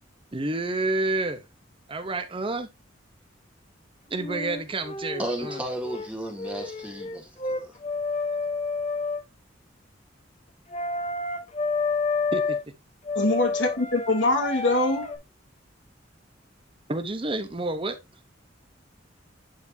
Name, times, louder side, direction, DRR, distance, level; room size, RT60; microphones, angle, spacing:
voice 1, 0.3-1.4 1.9-2.7 4.1-5.6 12.3-12.6 16.9-18.0, right 2 dB, 30° right, 0.8 m, -29 dB
sound 1, 4.1-6.1 6.4-9.2 10.7-12.6 13.0-15.2, left 3 dB, 40° left, 1.2 m, -30 dB
voice 2, 5.2-7.7, right 1 dB, 5° right, 2.0 m, -34 dB
voice 3, 13.1-15.1, left 2 dB, 75° left, 2.6 m, -23 dB
10.5 x 4.4 x 2.7 m
head